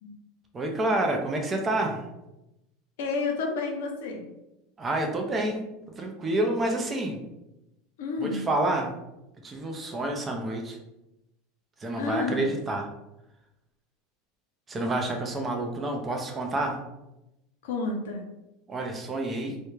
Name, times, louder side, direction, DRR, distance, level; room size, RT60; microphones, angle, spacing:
voice 1, 0.5-2.0 4.8-5.6 6.0-7.2 8.2-8.9 9.4-10.8 11.8-12.9 14.7-16.8 18.7-19.6, right 2 dB, 25° right, 2 dB, 0.5 m, -28 dB
voice 2, 3.0-4.2 8.0-8.4 12.0-12.4 17.6-18.2, left 3 dB, 75° left, 2 dB, 0.5 m, -30 dB
2.3 x 2.1 x 3.1 m, 0.92 s
hypercardioid pair, 90°, 0 cm